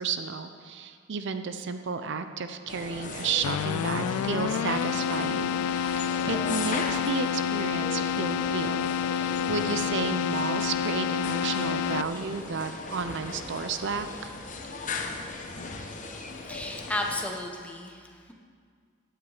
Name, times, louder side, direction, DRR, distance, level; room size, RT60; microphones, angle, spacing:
voice 1, 0.0-14.3, right 5 dB, 55° right, 9 dB, 0.6 m, -32 dB
sound 1, 2.7-17.2, left 3 dB, 35° left, 0.9 m, -38 dB
Keyboard (musical), 3.4-12.4, left 8 dB, 80° left, 0.3 m, -29 dB
voice 2, 16.3-18.3, left 1 dB, 5° left, 1 dB, 1.0 m, -34 dB
15.5 x 9.0 x 4.9 m, 2.1 s
head